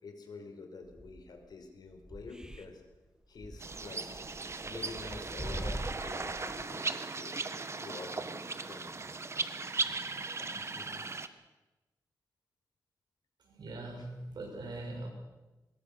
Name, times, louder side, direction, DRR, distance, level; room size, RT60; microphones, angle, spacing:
voice 1, 0.0-2.8 3.3-4.1 4.6-7.3 7.8-9.0 9.8-11.1, left 4 dB, 65° left, 5 dB, 5.0 m, -48 dB
sound 1, 0.8-1.4 1.9-2.6 2.9-3.0 3.3-6.6, right 1 dB, 10° right, 1.9 m, -43 dB
sound 2, 3.6-11.3, right 3 dB, 40° right, 1.4 m, -37 dB
voice 2, 13.4-15.1, right 2 dB, 75° right, 1 dB, 7.3 m, -41 dB
23.5 x 21.0 x 6.7 m, 1.1 s
cardioid pair, 90°, 7 cm